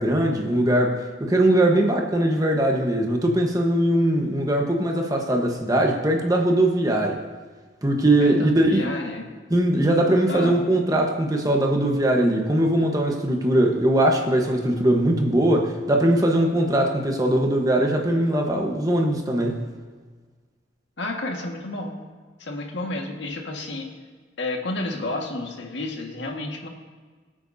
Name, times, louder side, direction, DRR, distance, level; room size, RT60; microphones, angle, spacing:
voice 1, 0.0-7.2 7.8-8.9 9.5-19.6, right 1 dB, 20° right, 2 dB, 1.2 m, -21 dB
voice 2, 8.2-9.3 10.3-10.7 21.0-22.0 22.4-23.9 24.4-26.7, left 2 dB, 80° left, 1 dB, 1.8 m, -31 dB
22.5 x 8.6 x 2.8 m, 1.4 s
head